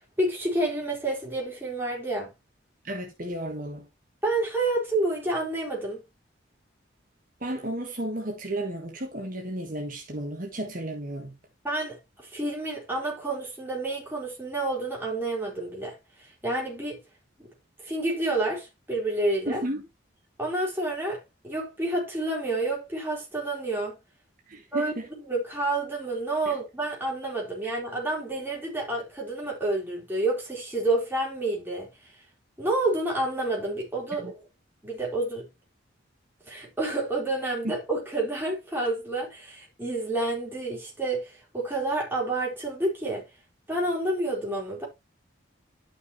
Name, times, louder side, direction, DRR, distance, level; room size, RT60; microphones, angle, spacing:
voice 1, 0.2-2.3 4.2-6.0 11.6-17.0 17.4-17.5 17.8-19.6 20.4-24.0 24.7-32.1 32.6-34.4 34.8-35.5 36.5-43.3 43.7-44.9, right 2 dB, 10° right, 4.0 m, -29 dB
voice 2, 2.8-3.9 7.4-11.4 19.5-19.8 24.5-25.1 26.4-26.6 34.2-34.3 37.6-37.8, right 1 dB, 45° right, 1.5 m, -33 dB
11.5 x 6.1 x 3.1 m
head